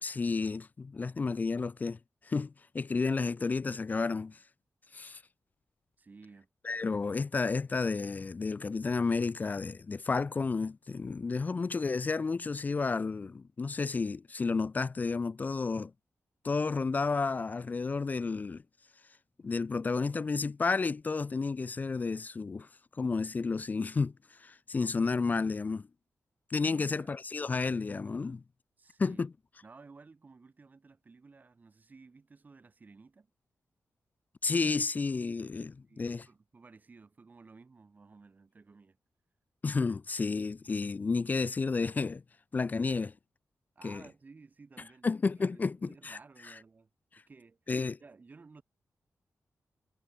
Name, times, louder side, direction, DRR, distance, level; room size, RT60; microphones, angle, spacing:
voice 1, 0.0-4.4 4.9-5.2 6.6-15.9 16.4-18.6 19.4-22.7 23.0-25.9 26.5-28.4 29.0-29.3 34.4-36.3 39.6-42.2 42.5-43.1 43.8-44.0 45.0-46.2 46.5-46.6 47.1-47.2 47.7-48.0, left 4 dB, 30° left, 0.6 m, -31 dB
voice 2, 6.0-6.5 26.6-27.2 28.8-29.2 29.6-33.3 35.9-39.0 43.8-45.1 45.4-47.6 48.0-48.6, right 4 dB, 30° right, 3.9 m, -55 dB
wide cardioid pair, 160°, 5 cm